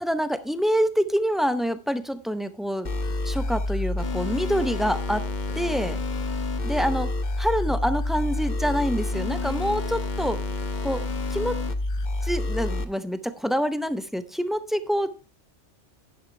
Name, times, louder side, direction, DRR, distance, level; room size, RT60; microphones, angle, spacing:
voice 1, 0.0-2.9 3.2-5.3 5.5-6.0 6.6-7.1 7.4-10.4 10.8-11.6 12.2-15.2, equal, ahead, 11 dB, 0.4 m, -26 dB
sound 1, 2.8-12.8, left 2 dB, 40° left, 0.9 m, -28 dB
10.5 x 10.5 x 3.2 m, 0.31 s
omnidirectional pair, 1.3 m